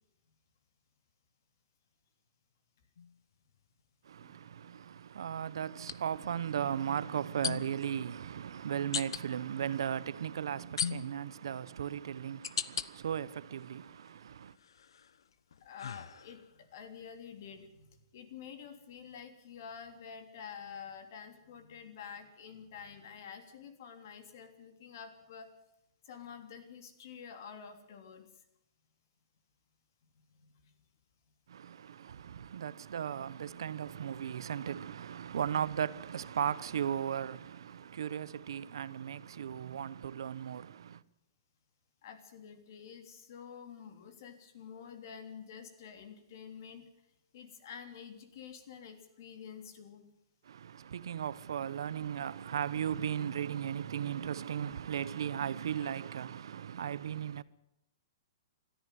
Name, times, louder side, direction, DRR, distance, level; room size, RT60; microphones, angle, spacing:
sound 1, 3.0-3.1 5.8-6.0 7.4-7.9 8.9-9.2 10.8-11.3 11.9-12.9 13.4-14.1 14.6-16.6, left 7 dB, 90° left, 1.0 m, -38 dB
voice 1, 4.0-14.6 31.5-41.0 50.4-57.4, right 9 dB, 70° right, 0.9 m, -36 dB
voice 2, 15.6-25.5 26.0-28.2 30.4-30.7 33.7-33.9 38.2-38.4 42.0-46.8 47.3-50.0 55.8-55.9, left 7 dB, 45° left, 3.2 m, -49 dB
21.5 x 14.0 x 9.3 m
hypercardioid pair, 175°, 2 cm